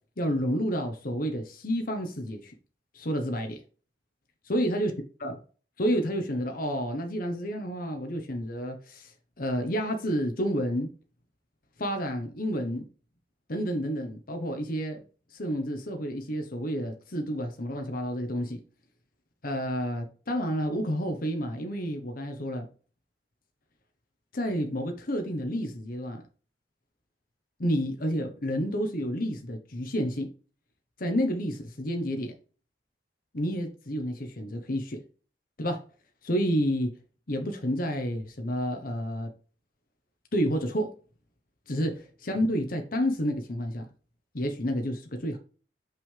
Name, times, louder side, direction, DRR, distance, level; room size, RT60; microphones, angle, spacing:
voice 1, 0.2-2.5 2.9-3.6 4.5-4.9 5.2-5.4 5.8-9.1 9.4-10.9 11.8-12.9 13.5-15.0 15.3-18.6 19.4-22.7 24.3-26.2 27.6-30.3 31.0-32.3 33.3-35.0 35.6-35.8 36.2-37.0 37.3-39.3 40.3-40.9 41.7-43.8 44.3-45.4, equal, 55° left, 1.1 m, -30 dB
5.8 x 5.5 x 3.4 m
head